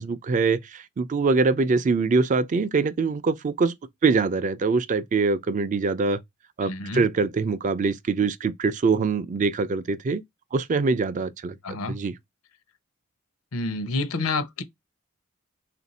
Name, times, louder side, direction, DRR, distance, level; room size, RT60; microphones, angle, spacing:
voice 1, 0.0-3.7 4.0-6.2 6.6-10.2 10.5-12.1, right 4 dB, 35° right, 0.4 m, -24 dB
voice 2, 6.6-7.1 11.6-12.0 13.5-14.6, left 3 dB, 85° left, 0.7 m, -28 dB
3.5 x 2.5 x 4.0 m
head